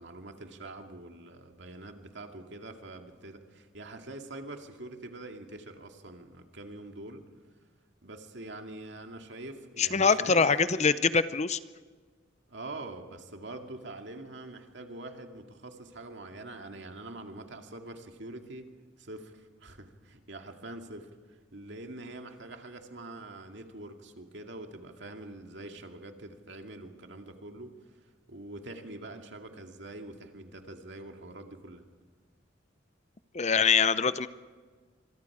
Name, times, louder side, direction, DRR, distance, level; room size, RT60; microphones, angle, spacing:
voice 1, 0.0-7.2 8.0-10.5 12.5-18.7 19.0-31.8, right 2 dB, 65° right, 4 dB, 2.3 m, -44 dB
voice 2, 9.8-11.6 33.3-34.3, left 5 dB, 35° left, 14 dB, 0.6 m, -24 dB
26.0 x 22.5 x 4.9 m, 1.5 s
head